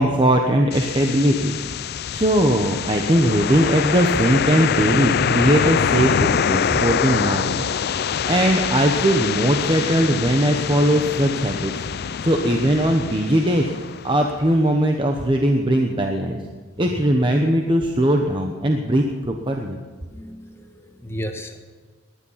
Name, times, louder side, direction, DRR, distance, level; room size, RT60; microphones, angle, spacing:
voice 1, 0.0-1.6 1.9-7.7 8.3-13.7 14.0-16.4 16.8-19.8, right 1 dB, 25° right, 2 dB, 1.0 m, -20 dB
sound 1, 0.7-14.6, left 7 dB, 50° left, 0.4 m, -24 dB
voice 2, 20.1-21.6, equal, 10° left, 4 dB, 1.3 m, -34 dB
18.5 x 11.0 x 5.8 m, 1.5 s
head